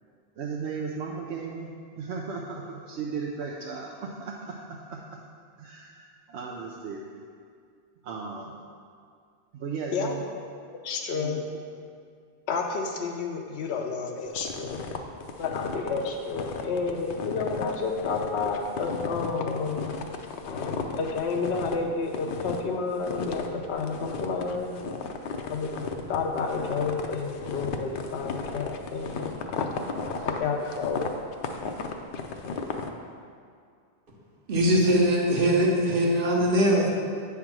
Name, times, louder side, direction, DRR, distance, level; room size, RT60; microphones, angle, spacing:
voice 1, 0.4-5.1 5.6-7.2 8.0-8.6 9.5-10.2 11.2-11.4, right 5 dB, 90° right, -1 dB, 0.9 m, -36 dB
voice 2, 10.8-11.4 12.5-14.8 15.4-19.9 20.3-24.7 25.4-25.7 26.1-29.1 29.6-29.7 30.1-31.0, left 4 dB, 80° left, 2 dB, 0.9 m, -30 dB
sound 1, 14.4-21.8 22.1-22.7 23.0-32.9, left 5 dB, 60° left, 0.7 m, -35 dB
voice 3, 34.5-36.9, equal, 55° right, -1 dB, 1.2 m, -21 dB
8.8 x 3.5 x 5.9 m, 2.2 s
omnidirectional pair, 1.1 m